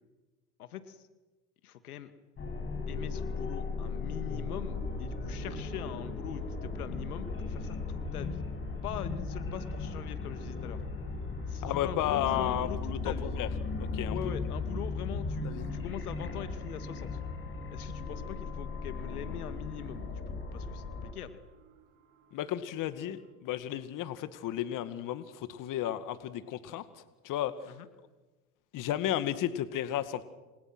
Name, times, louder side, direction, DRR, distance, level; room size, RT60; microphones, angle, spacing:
voice 1, 0.6-1.1 1.6-2.1 2.9-8.4 8.8-10.8 11.4-13.3 14.1-17.1 17.7-21.4 27.7-27.9, left 10 dB, 85° left, 10 dB, 2.4 m, -42 dB
sound 1, 2.4-21.1, left 4 dB, 30° left, 7.1 m, -37 dB
sound 2, 4.4-23.3, right 7 dB, 45° right, 5.7 m, -51 dB
voice 2, 11.6-13.5 13.9-14.3 15.4-15.7 22.3-26.8 27.2-27.5 28.7-30.2, left 12 dB, 45° left, 11 dB, 2.1 m, -33 dB
29.0 x 27.0 x 6.2 m, 1.2 s
hypercardioid pair, 100°, 43 cm